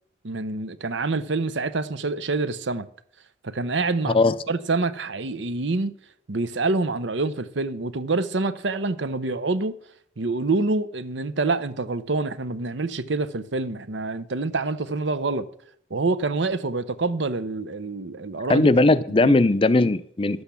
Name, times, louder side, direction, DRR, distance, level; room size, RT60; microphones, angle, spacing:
voice 1, 0.2-2.9 3.4-4.2 4.5-5.9 6.3-9.8 10.2-15.5 15.9-18.7 19.2-19.3, right 3 dB, 75° right, 0.8 m, -26 dB
voice 2, 18.5-20.4, left 2 dB, 30° left, 0.5 m, -18 dB
12.0 x 8.1 x 7.0 m
head